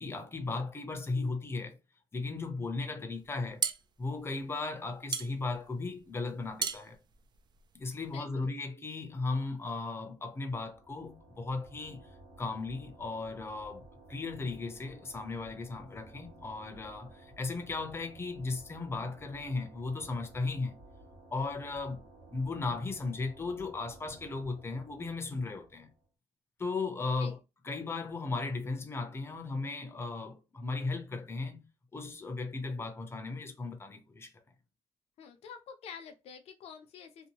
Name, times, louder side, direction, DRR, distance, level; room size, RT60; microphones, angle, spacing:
voice 1, 0.0-1.8 2.1-3.6 4.0-7.0 7.8-12.1 12.4-20.8 21.3-25.9 26.6-27.4 27.6-34.3, left 3 dB, 25° left, 0.6 m, -36 dB
sound 1, 3.2-8.2, right 7 dB, 45° right, 0.4 m, -38 dB
voice 2, 8.1-8.5 27.2-27.4 35.2-37.3, left 6 dB, 75° left, 0.6 m, -48 dB
sound 2, 10.2-26.1, right 1 dB, 85° right, 1.1 m, -55 dB
2.7 x 2.1 x 2.9 m
cardioid pair, 90°, 11 cm